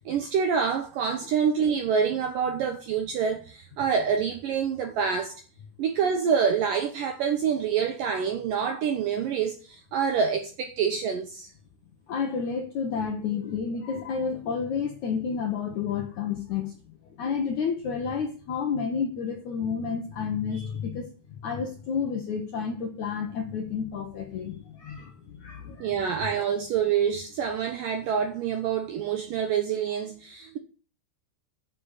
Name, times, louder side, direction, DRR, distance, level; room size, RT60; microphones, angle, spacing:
voice 1, 0.0-5.4 5.8-11.5 25.8-30.6, right 7 dB, 75° right, 2.0 m, -26 dB
voice 2, 12.1-16.8 17.2-21.1 21.4-26.2, left 6 dB, 65° left, 1.9 m, -30 dB
9.6 x 6.9 x 8.0 m
omnidirectional pair, 5.2 m